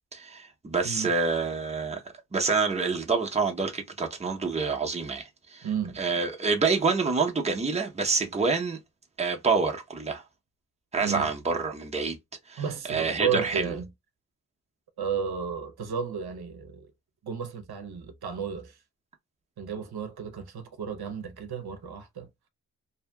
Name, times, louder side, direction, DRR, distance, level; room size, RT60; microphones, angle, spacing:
voice 1, 0.1-2.0 2.3-5.7 6.0-8.8 9.2-10.2 10.9-12.2 12.5-12.6 12.9-13.6, right 4 dB, 15° right, 0.7 m, -27 dB
voice 2, 5.6-6.0 11.0-11.3 12.6-13.9 15.0-16.9 17.2-18.8 19.6-22.3, right 7 dB, 75° right, 0.8 m, -33 dB
2.7 x 2.7 x 2.2 m
wide cardioid pair, 125°, 38 cm